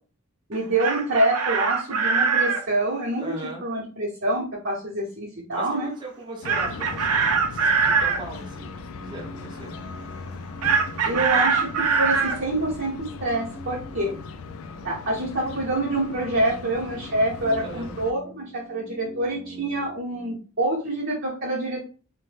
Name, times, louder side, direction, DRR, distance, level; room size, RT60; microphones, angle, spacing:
voice 1, 0.5-3.2 3.6-5.9 11.1-14.1 14.8-21.9, right 1 dB, 45° right, -7 dB, 0.9 m, -26 dB
Chicken rooster, 0.5-2.6 6.5-8.2 10.6-12.4, right 5 dB, 80° right, 0.5 m, -22 dB
voice 2, 3.2-3.7 5.6-7.2 7.5-9.8 17.6-18.0, right 1 dB, 20° right, -1 dB, 0.6 m, -39 dB
sound 1, 6.4-18.1, left 4 dB, 65° left, 0.3 m, -39 dB
sound 2, 7.9-20.4, right 1 dB, 45° left, 0.9 m, -45 dB
2.7 x 2.2 x 3.3 m, 0.37 s
head